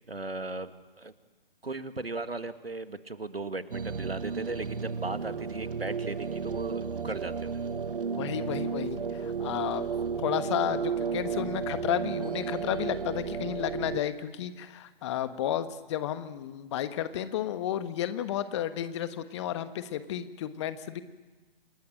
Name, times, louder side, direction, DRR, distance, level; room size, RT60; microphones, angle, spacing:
voice 1, 0.1-0.7 1.0-1.1 1.6-7.6, right 2 dB, 85° right, 11 dB, 1.8 m, -37 dB
sound 1, 3.7-14.0, right 6 dB, 65° right, 1.2 m, -33 dB
voice 2, 8.1-9.9 10.2-21.0, left 11 dB, 30° left, 12 dB, 1.3 m, -32 dB
28.0 x 20.0 x 9.1 m, 1.3 s
figure-of-eight pair, 130°, 29 cm